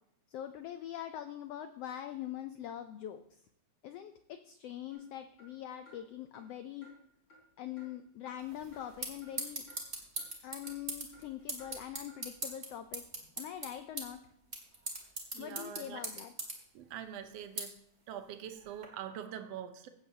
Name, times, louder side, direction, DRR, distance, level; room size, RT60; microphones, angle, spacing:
voice 1, 0.3-3.2 3.8-6.9 7.6-9.6 10.4-13.0 13.4-14.2 15.4-16.3, left 11 dB, 85° left, 9 dB, 1.3 m, -43 dB
sound 1, 4.9-5.1 5.4-5.5 5.9-6.0 6.3-6.5 6.8-6.9 7.3-7.4 7.8-7.9 8.3-8.4 8.7-8.9 9.2-9.3 9.7-9.8 10.2-10.3 10.6-10.8 11.1-11.3 11.6-11.7 12.1-12.2, equal, 40° left, 5.3 m, -58 dB
sound 2, 8.4-18.9, right 2 dB, 25° right, 1.9 m, -43 dB
voice 2, 15.3-16.0 16.7-17.8 18.1-19.9, right 9 dB, 70° right, 8 dB, 1.7 m, -44 dB
16.5 x 8.2 x 2.8 m, 0.71 s
omnidirectional pair, 3.4 m